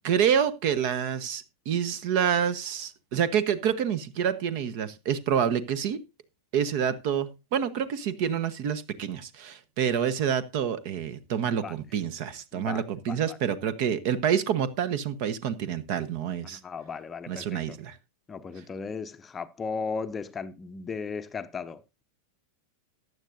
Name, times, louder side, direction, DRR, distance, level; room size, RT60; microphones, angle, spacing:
voice 1, 0.0-6.0 6.5-16.6 17.3-18.0, right 8 dB, 45° right, 1.1 m, -27 dB
voice 2, 12.5-13.4 16.5-17.6 18.3-22.0, left 5 dB, 20° left, 0.7 m, -36 dB
14.5 x 9.6 x 2.6 m
figure-of-eight pair, 90°, 0 cm